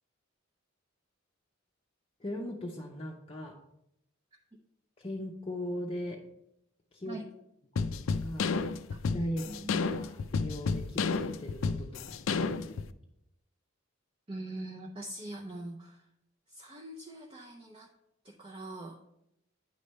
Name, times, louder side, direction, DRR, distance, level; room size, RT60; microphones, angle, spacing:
voice 1, 2.2-3.6 5.0-6.2 6.9-7.2 8.2-8.6 9.1-9.5 9.9-12.7, equal, 30° left, -1 dB, 0.6 m, -38 dB
sound 1, 7.8-12.9, left 4 dB, 70° left, 0.4 m, -31 dB
voice 2, 9.4-9.8 14.3-16.1 16.5-17.9 18.2-19.0, right 1 dB, 25° right, -1 dB, 0.6 m, -42 dB
9.3 x 3.2 x 5.3 m, 0.81 s
head